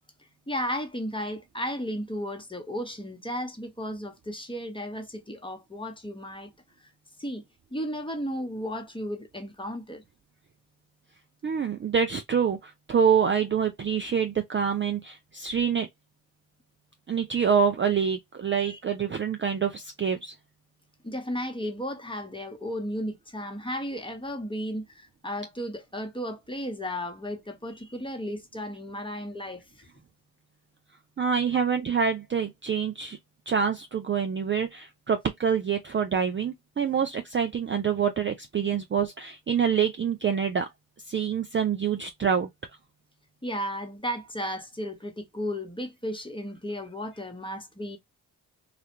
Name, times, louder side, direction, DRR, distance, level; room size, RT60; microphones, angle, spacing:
voice 1, 0.5-6.5 6.8-6.9 7.2-7.4 7.7-10.1 18.6-18.8 21.0-29.9 31.5-31.6 43.4-48.0, equal, 10° left, 0.9 m, -34 dB
voice 2, 11.4-15.9 17.1-20.3 31.2-33.2 33.5-40.7 41.1-42.5, right 7 dB, 30° right, 0.4 m, -26 dB
2.4 x 2.1 x 2.8 m
supercardioid pair, 40°, 44 cm